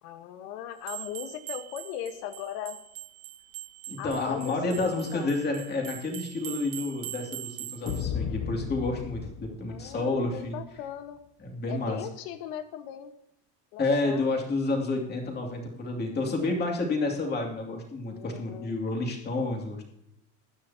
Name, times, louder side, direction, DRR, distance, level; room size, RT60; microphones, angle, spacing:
voice 1, 0.0-2.8 4.0-5.3 9.7-11.2 11.7-13.1 13.7-14.3 18.0-18.7, left 10 dB, 85° left, 8 dB, 1.4 m, -39 dB
sound 1, 0.8-8.1, right 15 dB, 75° right, 1.8 m, -42 dB
voice 2, 3.9-10.6 11.4-12.0 13.8-19.8, left 2 dB, 20° left, 0 dB, 2.6 m, -30 dB
sound 2, 7.9-10.5, left 8 dB, 45° left, 0.8 m, -35 dB
21.0 x 9.8 x 2.9 m, 0.79 s
cardioid pair, 165°, 46 cm